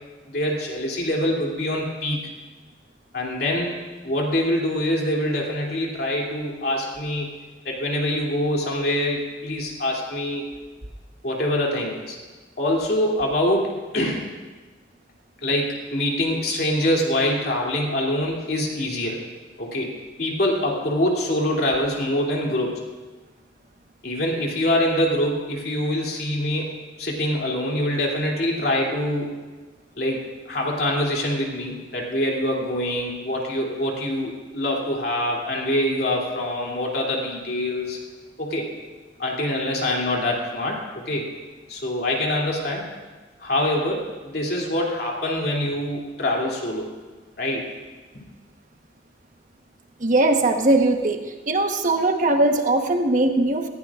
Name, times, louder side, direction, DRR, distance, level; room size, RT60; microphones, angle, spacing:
voice 1, 0.3-2.2 3.1-3.8 4.0-7.4 7.6-10.5 11.2-12.2 12.6-14.3 15.4-19.2 19.6-22.8 24.0-29.4 30.0-30.2 30.5-38.0 38.4-38.7 39.2-41.3 41.7-42.9 43.4-46.9 47.4-47.7, left 1 dB, 60° left, -2 dB, 2.9 m, -25 dB
voice 2, 50.0-51.2 51.5-53.7, right 2 dB, 45° right, 4 dB, 1.2 m, -20 dB
19.0 x 15.5 x 2.5 m, 1.3 s
head